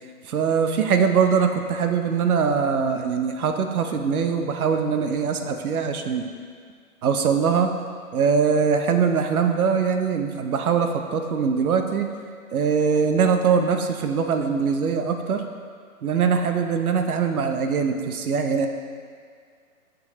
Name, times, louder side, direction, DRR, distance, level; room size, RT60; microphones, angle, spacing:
voice 1, 0.3-6.3 7.0-7.7 8.1-12.1 12.5-15.4 16.0-18.7, right 6 dB, 80° right, 6 dB, 0.8 m, -22 dB
7.0 x 6.4 x 2.9 m, 2.1 s
hypercardioid pair, 165°, 43 cm